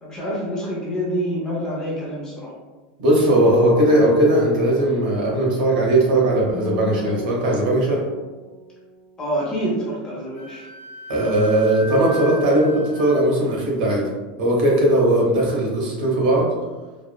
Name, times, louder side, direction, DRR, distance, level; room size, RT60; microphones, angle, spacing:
voice 1, 0.0-2.5 9.2-10.7, equal, 15° left, -6 dB, 0.5 m, -26 dB
voice 2, 3.0-8.0 11.1-14.1 14.4-16.5, right 1 dB, 65° right, -3 dB, 0.9 m, -18 dB
Acoustic guitar, 6.5-10.2, left 6 dB, 30° right, 0.7 m, -37 dB
Wind instrument woodwind instrument, 10.4-13.2, left 1 dB, 55° left, 0.7 m, -38 dB
3.0 x 2.0 x 2.2 m, 1.2 s
supercardioid pair, 175°, 5 cm